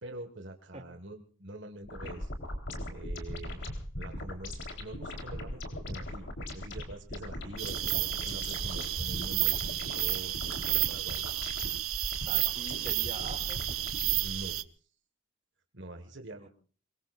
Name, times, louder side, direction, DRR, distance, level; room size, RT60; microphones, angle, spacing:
voice 1, 0.0-2.3 2.9-3.6 4.0-11.2 14.2-14.9 15.7-16.5, right 1 dB, 55° right, 5 dB, 1.7 m, -45 dB
sound 1, 1.8-14.2, left 1 dB, 55° left, 3.9 m, -39 dB
sound 2, 7.6-14.6, right 15 dB, 75° right, 0.9 m, -32 dB
voice 2, 12.3-13.7 16.3-16.5, right 3 dB, 30° right, 5 dB, 2.6 m, -44 dB
25.0 x 22.5 x 2.5 m, 0.40 s
head